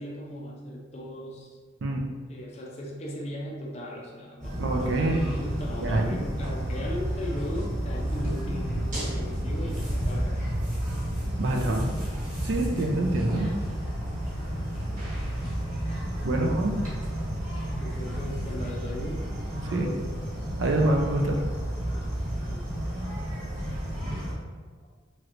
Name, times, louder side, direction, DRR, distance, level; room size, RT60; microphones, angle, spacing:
voice 1, 0.0-1.5 2.3-10.4 11.0-11.8 16.2-16.7 17.8-19.2 19.5-20.1 22.5-22.6, left 1 dB, 35° left, -1 dB, 0.4 m, -38 dB
sound 1, 4.4-24.3, equal, 40° right, 1.1 m, -31 dB
voice 2, 4.6-5.4 5.8-6.2 11.4-11.9 12.4-13.6 16.2-16.8 19.6-19.9 20.6-21.4, right 2 dB, 70° right, 2 dB, 0.4 m, -26 dB
3.0 x 3.0 x 2.5 m, 1.5 s
head